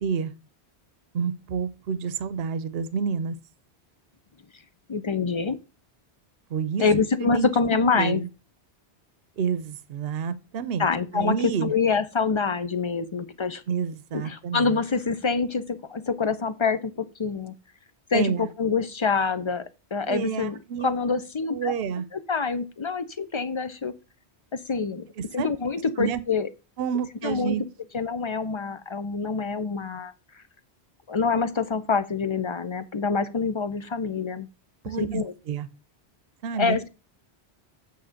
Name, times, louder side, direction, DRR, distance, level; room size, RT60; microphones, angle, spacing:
voice 1, 0.0-0.3 1.1-3.3 6.5-6.8 7.2-7.5 7.9-8.3 9.4-10.9 11.1-11.7 13.7-14.8 18.1-18.5 20.1-20.9 21.5-22.0 25.2-25.5 26.0-26.2 26.8-27.6 34.8-35.7 36.4-36.8, right 6 dB, 65° right, 0.9 m, -29 dB
voice 2, 4.9-5.6 6.8-8.2 10.8-13.6 14.1-17.5 18.1-19.7 19.9-21.7 22.1-24.0 24.5-25.1 25.3-26.5 27.2-27.6 27.9-30.1 31.1-34.5 35.0-35.3 36.6-36.9, left 5 dB, 40° left, 0.4 m, -26 dB
8.6 x 3.6 x 6.3 m
omnidirectional pair, 1.1 m